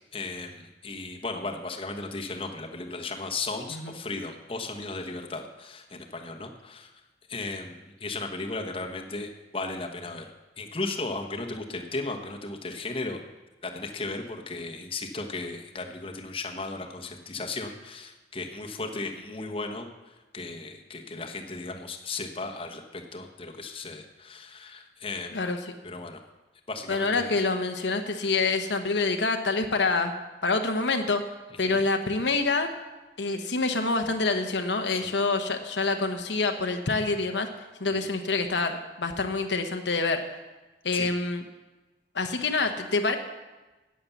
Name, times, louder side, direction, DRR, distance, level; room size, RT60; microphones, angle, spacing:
voice 1, 0.1-6.9 7.3-13.2 13.6-25.3 25.8-26.2 26.7-27.3 31.6-31.8 34.9-35.1 37.9-38.0 40.9-41.1, left 3 dB, 30° left, 2 dB, 1.1 m, -36 dB
voice 2, 25.3-25.7 26.9-30.1 30.4-31.2 31.6-32.7 33.2-37.5 37.8-40.2 40.8-41.4 42.1-43.2, left 3 dB, 75° left, 5 dB, 1.0 m, -26 dB
11.0 x 8.8 x 7.1 m, 1.1 s
head